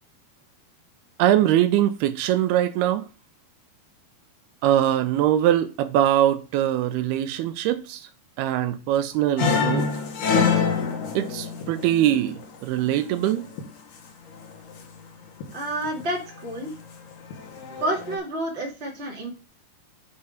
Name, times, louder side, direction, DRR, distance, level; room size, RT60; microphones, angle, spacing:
voice 1, 1.2-3.0 4.6-8.1 8.4-9.9 11.2-13.5, right 12 dB, 80° right, 2.6 m, -22 dB
sound 1, 9.4-12.8 13.1-13.7 14.3-14.8 15.4-16.0 16.4-16.7 17.1-18.2, left 5 dB, 65° left, 2.5 m, -26 dB
voice 2, 15.5-16.7 17.8-19.3, right 1 dB, 20° right, 2.0 m, -29 dB
6.9 x 5.6 x 5.1 m
omnidirectional pair, 4.5 m